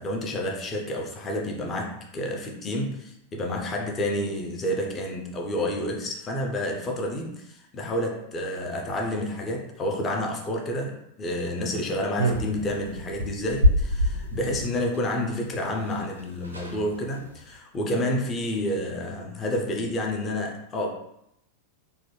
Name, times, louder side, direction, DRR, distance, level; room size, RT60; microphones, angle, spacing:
voice 1, 0.0-20.9, left 1 dB, 25° left, 1 dB, 0.5 m, -29 dB
sound 1, 12.2-14.7 15.9-16.0 16.2-16.3 16.4-16.8 17.3-17.5, equal, 85° right, 0.5 m, -25 dB
3.0 x 2.2 x 3.1 m, 0.78 s
figure-of-eight pair, 90°, 0 cm